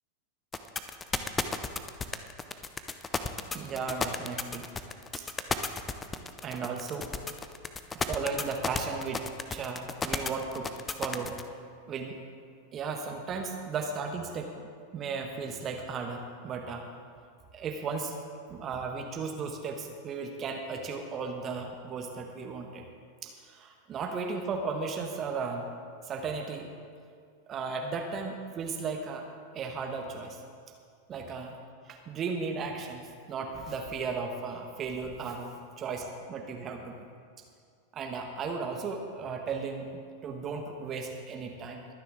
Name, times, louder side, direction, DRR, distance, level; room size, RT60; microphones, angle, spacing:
sound 1, 0.5-11.4, left 4 dB, 15° left, 0.7 m, -32 dB
voice 1, 3.5-4.7 5.2-5.3 6.4-7.1 7.9-9.2 9.5-10.7 11.0-11.5 11.9-12.2 12.7-14.5 14.9-16.9 17.5-18.1 18.5-22.8 23.2-25.7 26.0-26.7 27.5-29.3 29.5-30.4 31.1-31.6 31.8-37.1 37.9-41.9, right 4 dB, 30° right, 3 dB, 1.2 m, -35 dB
22.5 x 9.7 x 3.6 m, 2.2 s
figure-of-eight pair, 90°, 0 cm